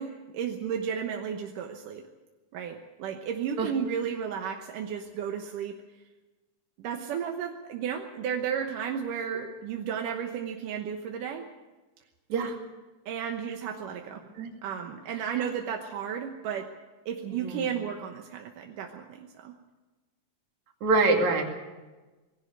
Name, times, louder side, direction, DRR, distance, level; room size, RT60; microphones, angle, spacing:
voice 1, 0.0-2.0 2.5-5.8 6.8-11.5 13.1-14.2 14.6-16.7 17.1-19.5, right 7 dB, 85° right, 3 dB, 2.7 m, -33 dB
voice 2, 17.2-17.7 20.8-21.4, right 3 dB, 65° right, 2 dB, 3.7 m, -25 dB
20.0 x 16.5 x 8.1 m, 1.2 s
omnidirectional pair, 3.6 m